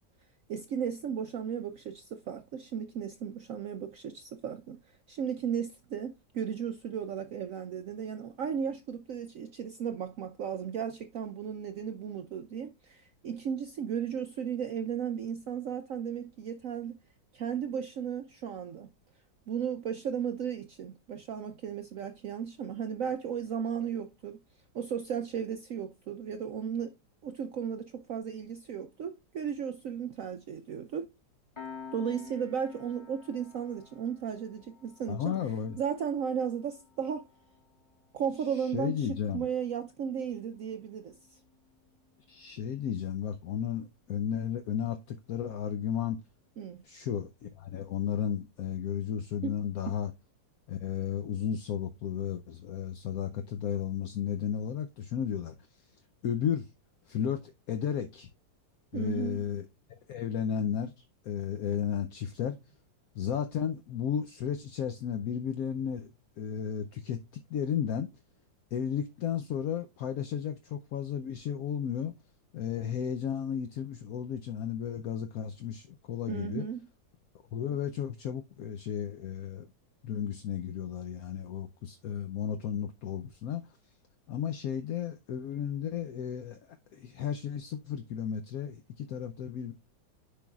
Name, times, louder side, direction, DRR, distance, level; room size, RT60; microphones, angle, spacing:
voice 1, 0.5-4.8 5.1-17.0 17.3-18.9 19.5-24.4 24.7-26.9 27.2-31.1 31.9-35.3 35.8-37.3 38.1-41.4 46.6-46.8 49.4-49.6 49.9-50.0 58.9-59.5 76.3-76.8, right 8 dB, 70° right, 0.8 m, -35 dB
Piano, 31.5-42.6, left 6 dB, 20° left, 1.2 m, -52 dB
voice 2, 35.1-35.8 38.5-39.5 42.3-46.2 46.8-50.1 50.7-55.5 56.2-56.7 57.1-58.3 58.9-59.7 60.1-62.6 63.1-66.1 66.4-67.2 67.5-68.1 68.7-72.1 72.5-76.6 77.5-79.7 80.0-83.7 84.3-86.6 86.9-89.7, left 8 dB, 65° left, 0.9 m, -33 dB
10.0 x 5.2 x 2.3 m
omnidirectional pair, 2.0 m